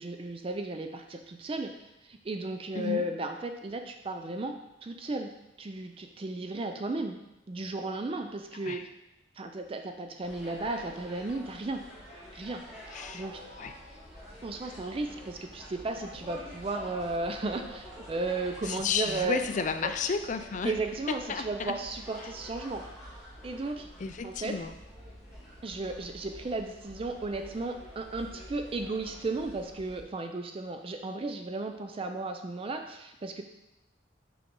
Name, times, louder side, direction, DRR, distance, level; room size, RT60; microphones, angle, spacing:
voice 1, 0.0-1.7 2.0-5.3 5.6-7.2 7.5-8.9 9.4-11.8 12.3-13.4 14.4-19.4 19.8-19.9 20.6-22.9 23.4-23.9 24.2-24.6 25.6-33.4, right 2 dB, 30° right, 6 dB, 0.4 m, -35 dB
voice 2, 2.8-3.1 8.6-8.8 12.9-13.2 13.6-13.7 18.6-20.7 21.1-21.7 24.0-24.7, left 5 dB, 40° left, 8 dB, 0.4 m, -32 dB
sound 1, 10.2-30.0, equal, 5° right, 2.2 m, -47 dB
6.8 x 5.1 x 3.7 m, 0.92 s
head